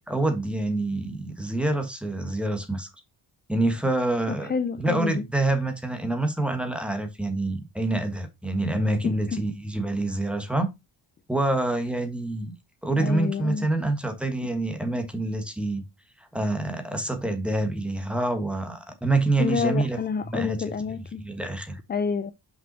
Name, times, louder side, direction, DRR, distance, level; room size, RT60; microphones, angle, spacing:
voice 1, 0.1-2.9 3.5-10.7 11.3-12.5 12.8-15.8 16.2-20.6 21.2-21.8, right 2 dB, ahead, 1.3 m, -27 dB
voice 2, 4.3-5.2 9.0-9.4 13.0-13.7 19.4-21.2 21.9-22.3, left 5 dB, 25° left, 0.4 m, -28 dB
5.7 x 5.5 x 4.1 m
cardioid pair, 140°, 44 cm